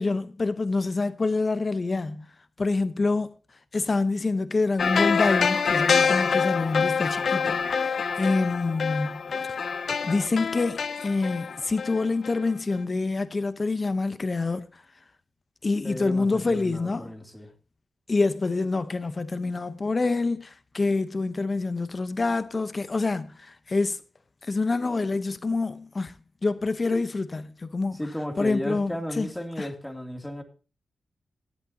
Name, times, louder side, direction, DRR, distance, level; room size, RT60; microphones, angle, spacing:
voice 1, 0.0-2.2 2.6-3.3 3.7-9.2 10.0-14.7 15.6-17.1 18.1-23.3 23.7-24.0 24.5-26.1 26.4-28.0 28.4-29.3, left 3 dB, 45° left, 0.9 m, -26 dB
sound 1, 4.8-12.4 12.7-12.8, left 6 dB, 70° left, 0.6 m, -26 dB
voice 2, 15.8-17.5 27.9-30.4, left 1 dB, 10° left, 2.8 m, -34 dB
16.5 x 8.6 x 2.8 m
supercardioid pair, 45°, 0 cm